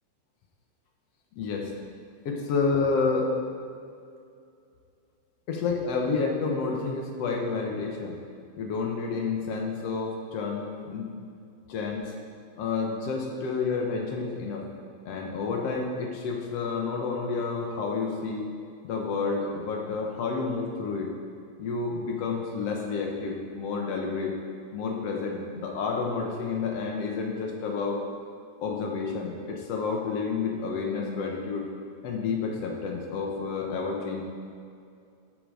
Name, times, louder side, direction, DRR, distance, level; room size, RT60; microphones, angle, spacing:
voice 1, 1.4-1.7 2.3-3.3 5.5-8.2 8.6-11.1 11.7-12.1 12.6-14.7 15.1-18.5 18.8-21.1 21.6-24.4 24.7-28.0 28.6-31.7 32.0-34.2, left 4 dB, 60° left, 1 dB, 2.0 m, -30 dB
12.5 x 6.9 x 5.0 m, 2.4 s
omnidirectional pair, 3.4 m